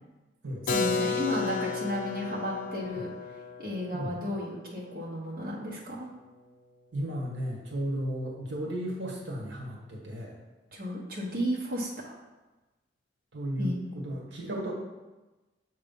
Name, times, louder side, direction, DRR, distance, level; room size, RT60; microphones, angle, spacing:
voice 1, 0.6-3.1 3.6-6.1 10.7-12.1 13.6-14.1, equal, 50° right, -5 dB, 1.2 m, -33 dB
Keyboard (musical), 0.7-6.3, left 4 dB, 45° left, 0.5 m, -34 dB
voice 2, 6.9-10.3 13.3-14.7, equal, 80° right, -2 dB, 1.4 m, -34 dB
7.2 x 3.2 x 5.3 m, 1.1 s
head